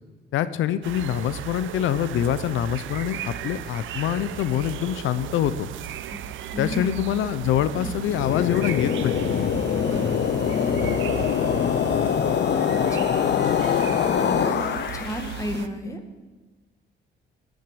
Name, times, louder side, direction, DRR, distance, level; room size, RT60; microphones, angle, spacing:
voice 1, 0.3-5.7 6.6-9.2, left 11 dB, 85° left, 14 dB, 0.7 m, -25 dB
sound 1, 0.8-15.7, right 11 dB, 80° right, 0.8 m, -36 dB
voice 2, 6.5-7.1 7.7-8.0 9.8-10.1 12.7-13.3 13.8-16.0, left 1 dB, 15° left, 5 dB, 2.1 m, -33 dB
sound 2, 8.0-15.4, left 8 dB, 60° left, 0.9 m, -24 dB
18.5 x 6.4 x 10.0 m, 1.3 s
cardioid pair, 90°, 20 cm